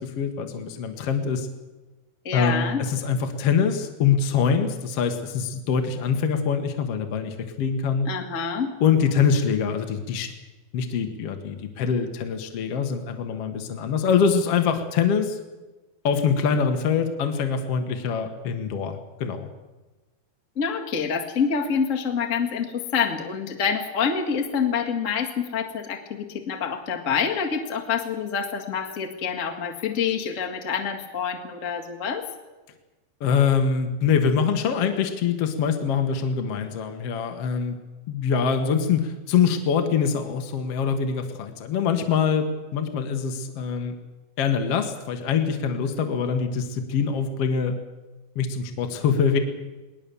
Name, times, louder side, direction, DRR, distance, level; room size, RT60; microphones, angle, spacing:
voice 1, 0.0-1.5 2.3-8.1 8.8-10.3 10.7-15.4 16.0-19.5 33.2-37.8 38.1-44.0 44.4-47.8 48.4-49.4, left 6 dB, 55° left, 5 dB, 1.8 m, -24 dB
voice 2, 2.2-2.8 8.0-8.7 20.5-32.2, left 6 dB, 35° left, 2 dB, 1.3 m, -27 dB
20.5 x 19.5 x 7.0 m, 1.2 s
omnidirectional pair, 4.3 m